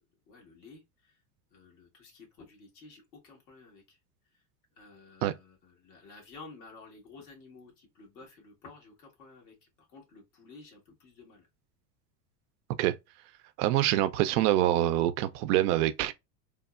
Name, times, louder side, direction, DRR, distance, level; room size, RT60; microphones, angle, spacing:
voice 1, 0.3-1.2 1.5-4.0 4.8-11.5, left 3 dB, 80° left, 1.7 m, -52 dB
voice 2, 13.6-16.1, right 14 dB, 65° right, 0.6 m, -25 dB
3.4 x 2.1 x 2.3 m
hypercardioid pair, 95°, 50 cm